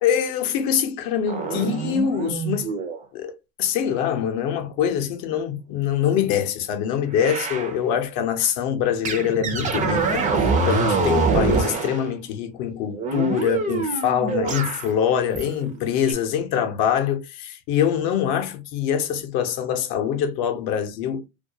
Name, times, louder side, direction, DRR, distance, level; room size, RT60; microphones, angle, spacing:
voice 1, 0.0-2.7 3.1-10.2 10.7-21.2, left 8 dB, 55° left, 0.6 m, -24 dB
sound 1, 1.3-3.0 7.2-7.8 9.0-12.0 12.9-14.9 15.4-15.7 16.1-16.2, right 4 dB, 20° right, 0.4 m, -24 dB
2.3 x 2.1 x 2.6 m
supercardioid pair, 115°, 41 cm